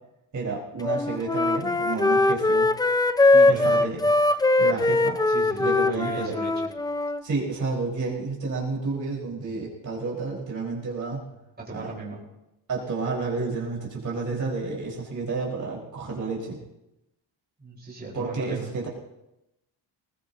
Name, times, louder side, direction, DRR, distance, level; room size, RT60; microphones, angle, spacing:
voice 1, 0.3-2.7 3.5-4.0 4.6-5.2 5.6-6.4 7.2-11.2 11.7-11.9 12.7-16.6 18.1-18.9, right 4 dB, 45° right, -3 dB, 4.9 m, -30 dB
Wind instrument woodwind instrument, 0.8-7.2, left 2 dB, 10° left, 0.5 m, -21 dB
voice 2, 3.3-4.1 4.4-4.9 5.3-6.7 9.2-9.7 11.6-12.2 17.6-18.7, right 3 dB, 20° right, -3 dB, 4.9 m, -39 dB
20.5 x 20.0 x 2.9 m, 0.90 s
cardioid pair, 125°, 42 cm